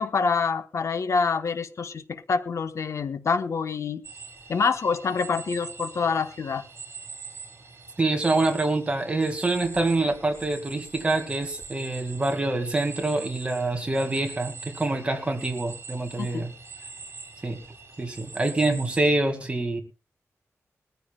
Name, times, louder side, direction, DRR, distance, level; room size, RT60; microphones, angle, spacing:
voice 1, 0.0-4.0 4.5-6.6 16.2-16.5, left 5 dB, 65° left, 10 dB, 1.1 m, -26 dB
sound 1, 4.0-19.0, right 4 dB, 45° right, 5.2 m, -43 dB
voice 2, 8.0-16.5 17.4-17.6 18.0-19.8, right 2 dB, 20° right, 5 dB, 2.1 m, -26 dB
21.0 x 14.5 x 2.3 m, 0.31 s
wide cardioid pair, 170°, 5 cm